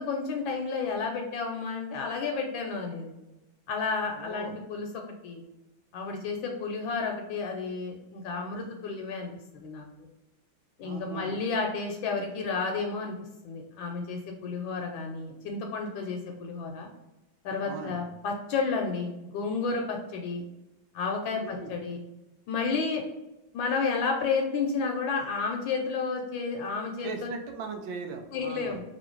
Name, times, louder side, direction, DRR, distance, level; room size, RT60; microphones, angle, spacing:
voice 1, 0.0-3.1 3.7-4.9 5.2-5.4 5.9-9.9 10.8-13.2 13.4-16.9 17.4-20.4 20.9-22.0 22.5-23.0 23.5-27.3 28.3-28.8, left 4 dB, 75° left, 2 dB, 1.3 m, -31 dB
voice 2, 4.1-4.5 10.8-11.4 17.6-18.0 21.4-21.7 27.0-28.8, right 4 dB, 80° right, 4 dB, 1.4 m, -39 dB
3.1 x 3.0 x 4.3 m, 0.99 s
omnidirectional pair, 2.2 m